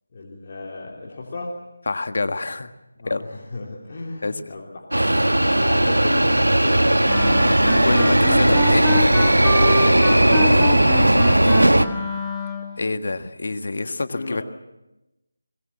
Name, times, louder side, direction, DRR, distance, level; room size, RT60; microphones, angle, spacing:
voice 1, 0.1-1.5 2.9-7.1 10.0-11.5 14.1-14.4, left 3 dB, 35° left, -3 dB, 3.1 m, -34 dB
voice 2, 1.9-2.7 3.0-3.2 4.2-4.3 7.8-8.8 12.8-14.4, left 3 dB, 55° left, 10 dB, 1.5 m, -26 dB
sound 1, 4.9-11.9, right 1 dB, 90° right, 1.5 m, -17 dB
Wind instrument woodwind instrument, 7.1-12.8, left 2 dB, 5° left, 2.0 m, -28 dB
22.0 x 21.0 x 7.3 m, 0.98 s
figure-of-eight pair, 160°, 0 cm